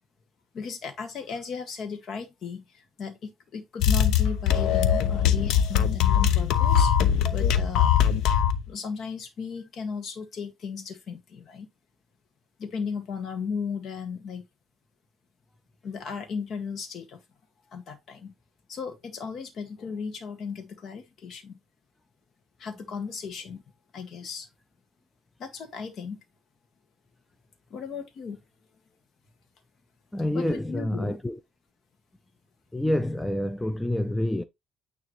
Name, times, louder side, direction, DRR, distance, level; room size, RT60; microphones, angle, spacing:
voice 1, 0.5-6.9 7.3-8.0 8.7-11.7 12.6-14.5 15.8-17.2 17.7-18.3 18.7-21.6 22.6-23.6 23.9-24.5 25.4-26.2 27.7-28.4 30.3-31.2, left 5 dB, 50° left, 1.8 m, -36 dB
sound 1, 3.8-8.6, left 9 dB, 75° left, 0.8 m, -21 dB
voice 2, 30.1-31.4 32.7-34.4, left 1 dB, 5° left, 0.5 m, -27 dB
9.3 x 3.4 x 3.1 m
cardioid pair, 120°, 0 cm